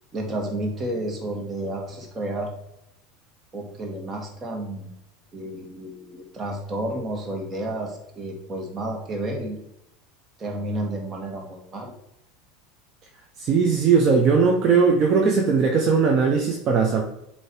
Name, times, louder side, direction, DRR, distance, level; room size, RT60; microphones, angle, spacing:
voice 1, 0.1-2.5 3.5-4.9 5.3-9.6 10.4-11.9, right 1 dB, 25° right, 1 dB, 1.9 m, -31 dB
voice 2, 13.4-17.0, right 5 dB, 45° right, 0 dB, 1.0 m, -19 dB
7.9 x 3.1 x 4.6 m, 0.83 s
hypercardioid pair, 95°, 0 cm